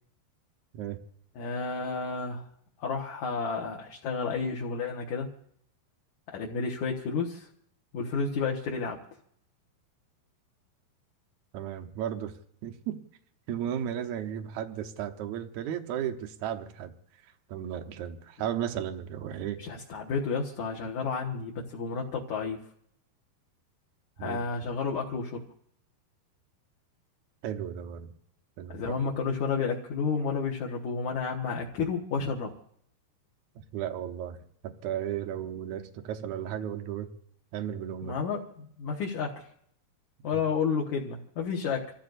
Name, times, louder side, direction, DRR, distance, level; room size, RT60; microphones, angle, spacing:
voice 1, 1.4-2.4 2.8-5.3 6.3-7.5 7.9-9.0 19.6-22.6 24.2-25.4 28.7-32.5 38.0-39.5 40.2-41.9, left 5 dB, 60° left, -1 dB, 2.2 m, -31 dB
voice 2, 11.5-12.4 12.6-13.0 13.5-16.9 17.2-19.6 24.2-24.4 27.4-28.1 28.6-29.0 33.5-34.4 34.6-37.1 37.5-38.2, right 10 dB, 85° right, 4 dB, 1.6 m, -34 dB
28.5 x 14.5 x 2.6 m, 0.68 s
omnidirectional pair, 4.7 m